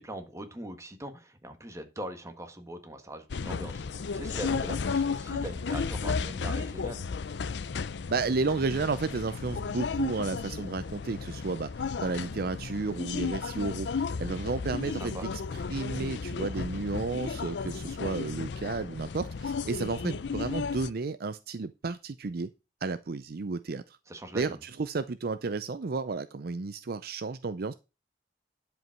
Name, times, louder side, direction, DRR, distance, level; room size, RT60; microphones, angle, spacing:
voice 1, 0.0-7.0 14.9-15.3 24.1-24.6, right 1 dB, 15° right, 1.5 m, -41 dB
sound 1, 3.3-20.9, left 5 dB, 75° left, 0.5 m, -34 dB
voice 2, 8.1-15.3 15.7-22.5 22.8-24.0 24.3-27.7, right 4 dB, 60° right, 0.5 m, -32 dB
11.0 x 5.2 x 5.9 m
head